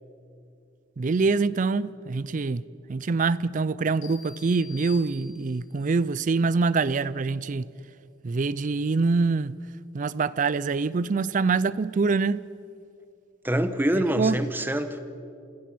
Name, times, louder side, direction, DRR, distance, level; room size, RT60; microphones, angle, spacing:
voice 1, 1.0-2.6 2.9-7.7 8.2-9.5 9.9-12.4 14.2-14.4, right 4 dB, 40° right, 0.4 m, -25 dB
sound 1, 4.0-5.8, left 6 dB, 85° left, 3.8 m, -47 dB
voice 2, 13.4-15.0, right 1 dB, 10° right, 1.0 m, -25 dB
29.0 x 16.0 x 6.0 m
head